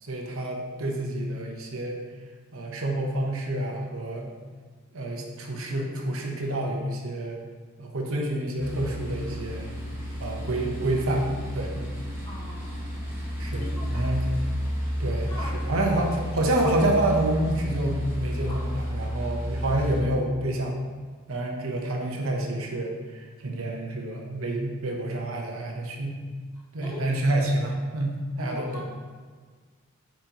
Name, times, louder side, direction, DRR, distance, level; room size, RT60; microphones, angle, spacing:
voice 1, 0.0-2.0 2.5-4.3 4.9-7.4 7.8-9.7 10.2-11.8 13.4-14.3 15.0-20.8 21.3-26.2 26.7-28.8, right 1 dB, 80° right, 1 dB, 0.9 m, -28 dB
sound 1, 8.6-20.0, equal, 10° right, 1.3 m, -32 dB
voice 2, 12.2-13.0 13.5-14.1 15.1-15.8 18.5-18.7 26.8-27.0 28.4-28.8, left 1 dB, 20° left, -9 dB, 1.9 m, -41 dB
7.4 x 5.1 x 2.9 m, 1.5 s
head